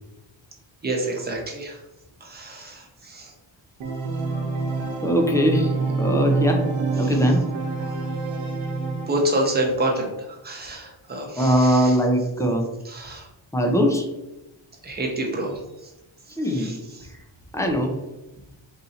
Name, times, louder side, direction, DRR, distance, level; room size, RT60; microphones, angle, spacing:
voice 1, 0.8-1.8 2.2-3.3 7.0-7.1 9.1-12.0 12.8-13.3 14.8-15.9 16.4-17.1, right 1 dB, 20° right, 0 dB, 0.8 m, -28 dB
Organ, 3.8-9.5, right 4 dB, 80° right, 0.9 m, -27 dB
voice 2, 5.0-5.7 6.0-6.6 7.0-7.4 11.4-12.7 13.5-14.1 16.4-16.8 17.5-18.0, equal, 5° left, 2 dB, 0.5 m, -21 dB
4.2 x 2.6 x 4.1 m, 0.97 s
wide cardioid pair, 165°, 48 cm